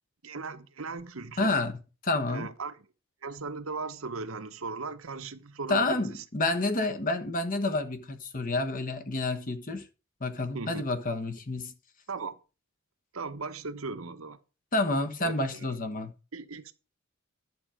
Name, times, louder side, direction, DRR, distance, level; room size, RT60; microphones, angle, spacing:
voice 1, 0.2-1.6 2.3-2.8 3.2-6.2 10.5-10.8 12.1-12.4 13.1-14.4 15.2-15.8 16.3-16.7, right 4 dB, 80° right, 1.0 m, -37 dB
voice 2, 1.4-2.5 5.7-9.9 10.2-11.7 14.7-16.1, left 2 dB, 40° left, 1.2 m, -29 dB
11.0 x 7.5 x 5.0 m
head